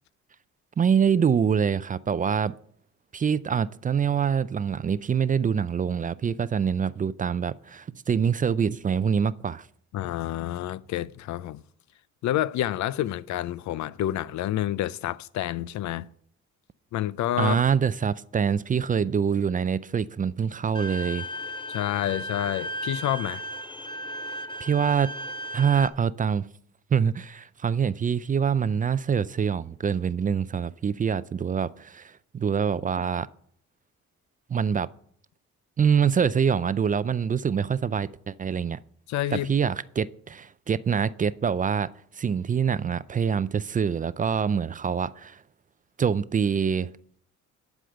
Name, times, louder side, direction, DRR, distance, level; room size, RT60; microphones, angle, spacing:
voice 1, 0.8-2.5 3.1-9.7 17.4-21.2 24.6-25.1 25.5-26.5 26.9-33.3 34.5-34.9 35.8-38.8 39.3-45.4 46.0-46.9, right 7 dB, 30° right, 0.4 m, -25 dB
voice 2, 9.9-11.6 12.2-16.1 16.9-17.6 21.7-23.4 39.1-39.5, left 13 dB, 70° left, 0.5 m, -28 dB
Bowed string instrument, 20.7-25.9, equal, 15° left, 0.8 m, -35 dB
11.5 x 5.0 x 7.8 m
cardioid pair, 90°, 30 cm